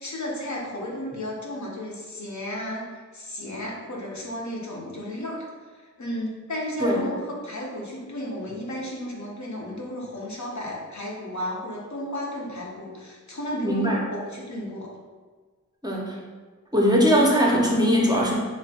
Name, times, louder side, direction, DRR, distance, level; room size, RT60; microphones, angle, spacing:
voice 1, 0.0-2.9 3.1-5.4 5.7-14.9, left 1 dB, 65° left, -3 dB, 0.7 m, -33 dB
voice 2, 13.6-14.0 15.8-16.2 16.7-18.3, equal, 15° right, -4 dB, 0.5 m, -20 dB
3.2 x 2.2 x 2.7 m, 1.5 s
wide cardioid pair, 45°, 31 cm